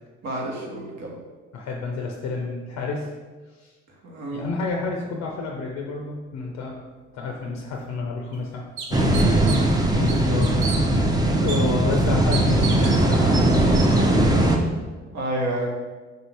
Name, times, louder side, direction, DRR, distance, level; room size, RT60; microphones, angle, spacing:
voice 1, 0.2-1.2 4.0-4.4 15.1-15.8, right 1 dB, 60° right, -2 dB, 1.1 m, -29 dB
voice 2, 1.5-3.1 3.5-3.7 4.3-6.8 7.1-9.7 9.9-11.1 11.4-13.8, left 3 dB, 60° left, 1 dB, 0.5 m, -30 dB
sound 1, 7.7-7.8 8.3-8.4 8.8-9.8 10.1-10.8 11.5-11.6 12.3-13.0, right 5 dB, 90° right, 0.5 m, -32 dB
sound 2, 8.9-14.6, right 1 dB, 15° right, 0.5 m, -19 dB
3.8 x 2.7 x 3.2 m, 1.4 s
hypercardioid pair, 60°, 30 cm